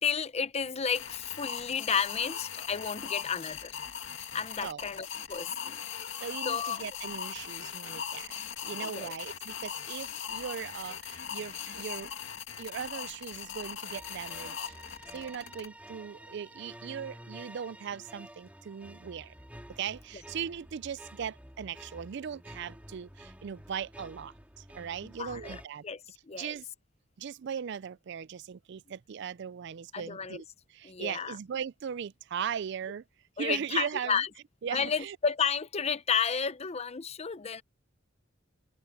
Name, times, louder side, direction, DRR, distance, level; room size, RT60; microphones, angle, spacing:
voice 1, 0.0-3.8 4.3-5.7 6.4-6.9 8.8-9.1 11.3-11.4 25.2-25.6 25.8-26.5 29.9-30.4 30.8-31.4 33.4-34.3 34.7-37.6, left 6 dB, 30° left, 0.6 m, -32 dB
sound 1, 0.9-15.7, left 8 dB, 70° left, 2.3 m, -40 dB
voice 2, 6.2-12.1 12.6-14.7 15.1-19.3 19.7-25.8 26.4-26.6 27.2-30.4 30.7-33.0 33.4-34.2 34.6-35.2, right 7 dB, 60° right, 0.4 m, -38 dB
sound 2, 13.9-25.7, right 1 dB, 10° right, 3.5 m, -50 dB
open air
head